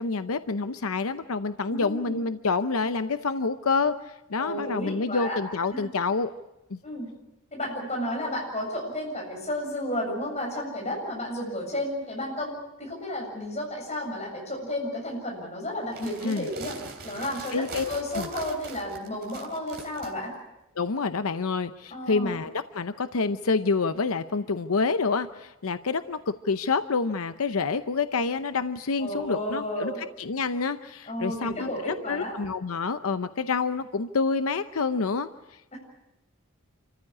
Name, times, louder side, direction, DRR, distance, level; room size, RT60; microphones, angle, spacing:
voice 1, 0.0-6.3 6.7-6.8 16.2-16.4 17.5-17.9 18.2-18.3 20.8-29.9 30.2-31.7 32.1-35.3, left 4 dB, 90° left, 11 dB, 0.7 m, -27 dB
voice 2, 1.7-2.2 4.4-5.4 5.7-5.9 6.8-7.1 7.5-20.3 21.9-22.4 29.0-30.0 31.1-32.3 35.7-35.8, left 1 dB, 30° left, 0 dB, 7.4 m, -32 dB
sound 1, 15.8-20.1, right 3 dB, 50° right, 3.5 m, -41 dB
27.0 x 14.5 x 9.7 m, 0.94 s
head